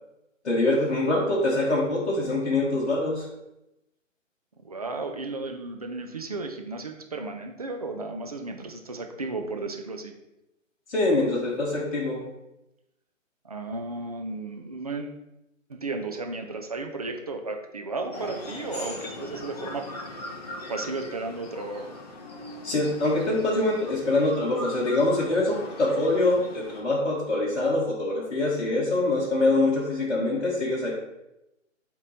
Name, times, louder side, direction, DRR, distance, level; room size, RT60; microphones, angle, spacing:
voice 1, 0.4-3.3 10.9-12.2 22.6-31.0, left 2 dB, 60° left, -3 dB, 1.3 m, -24 dB
voice 2, 4.6-10.2 13.4-15.2 15.7-19.9 20.7-21.9, right 3 dB, 30° right, 4 dB, 0.5 m, -34 dB
sound 1, 18.1-26.8, left 1 dB, 30° left, 0.9 m, -40 dB
8.0 x 3.0 x 4.0 m, 0.90 s
figure-of-eight pair, 135°, 39 cm